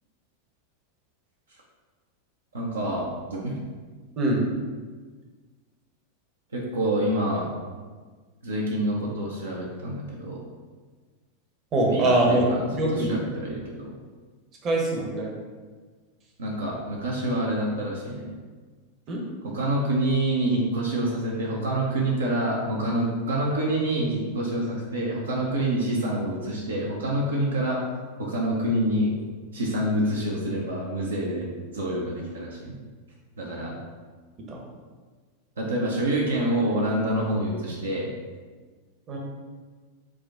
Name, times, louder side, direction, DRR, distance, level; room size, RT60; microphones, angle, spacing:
voice 1, 2.5-3.6 6.5-7.5 8.4-10.4 11.9-12.6 12.9-13.9 16.4-18.3 19.4-27.9 28.2-29.1 29.5-32.8 33.4-33.8 35.6-38.1, right 1 dB, 70° right, -3 dB, 0.6 m, -27 dB
voice 2, 11.7-12.5 12.8-13.1 14.6-15.3 19.1-19.2 34.5-34.6 39.1-39.2, right 2 dB, 30° right, -1 dB, 0.9 m, -23 dB
4.8 x 2.2 x 3.6 m, 1.4 s
figure-of-eight pair, 90°, 0 cm